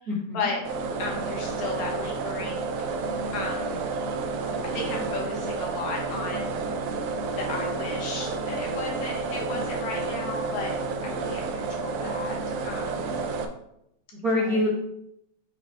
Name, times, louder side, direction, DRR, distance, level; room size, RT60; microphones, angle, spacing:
voice 1, 0.1-0.5 12.9-13.1 14.1-14.7, left 1 dB, 45° right, -6 dB, 1.2 m, -26 dB
sound 1, 0.6-13.4, right 4 dB, 80° right, 1.5 m, -30 dB
voice 2, 1.0-2.8 3.3-3.8 4.7-6.6 7.3-13.2 14.4-14.6, left 3 dB, 65° left, -1 dB, 2.6 m, -34 dB
6.3 x 5.0 x 3.9 m, 0.79 s
omnidirectional pair, 3.6 m